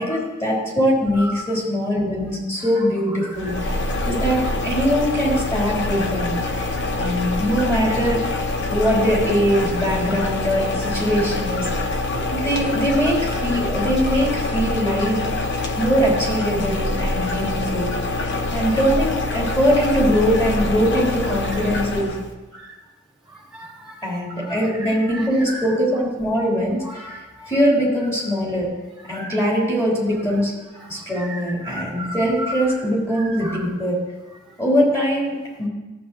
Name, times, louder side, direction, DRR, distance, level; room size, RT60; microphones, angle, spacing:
voice 1, 0.0-6.4 7.0-8.2 8.7-11.7 12.3-15.2 15.7-17.9 18.5-22.1 24.0-28.7 29.0-30.5 30.9-34.0 34.6-35.7, equal, 15° left, -6 dB, 3.6 m, -22 dB
voice 2, 2.6-4.4 6.4-7.1 22.5-22.7 23.3-25.7 26.8-27.5 29.0-29.3 30.8-32.7 33.1-33.7, right 1 dB, ahead, -3 dB, 1.9 m, -36 dB
sound 1, 3.3-22.3, left 2 dB, 55° left, 0.9 m, -25 dB
13.5 x 7.7 x 3.1 m, 1.2 s
head